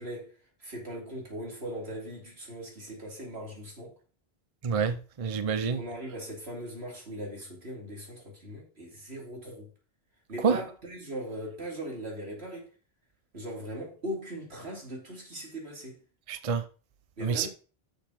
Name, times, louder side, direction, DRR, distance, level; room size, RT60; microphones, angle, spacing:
voice 1, 0.0-4.0 5.6-9.7 10.3-12.7 13.3-16.0 17.2-17.5, equal, 80° right, 3.4 m, -39 dB
voice 2, 4.6-5.8 10.4-10.6 16.3-16.6 17.2-17.5, right 6 dB, 40° right, 0.7 m, -27 dB
6.6 x 5.8 x 6.4 m
omnidirectional pair, 1.1 m